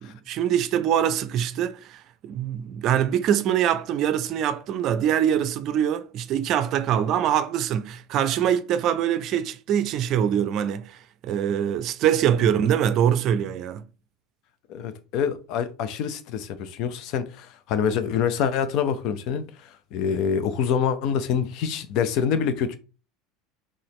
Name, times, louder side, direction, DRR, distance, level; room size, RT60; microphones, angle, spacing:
voice 1, 0.0-13.8, right 9 dB, 50° right, 0.4 m, -24 dB
voice 2, 14.7-22.8, left 7 dB, 60° left, 0.7 m, -26 dB
4.0 x 2.5 x 3.1 m
hypercardioid pair, 80°, 0 cm